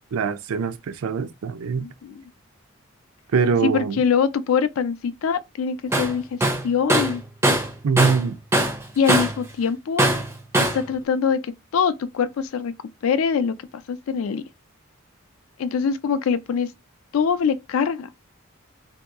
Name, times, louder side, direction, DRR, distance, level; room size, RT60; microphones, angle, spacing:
voice 1, 0.1-1.9 3.3-4.0 7.8-8.4, right 5 dB, 80° right, 0.4 m, -23 dB
voice 2, 1.8-2.2 3.6-6.4 6.6-7.2 9.0-10.0 10.7-12.7 13.0-13.5 13.9-14.4 15.6-16.7 17.1-18.1, left 6 dB, 70° left, 0.4 m, -23 dB
Tools, 5.9-6.1 6.4-8.3 8.5-9.4 10.0-10.8, right 1 dB, 10° right, 0.4 m, -21 dB
2.7 x 2.3 x 3.5 m
head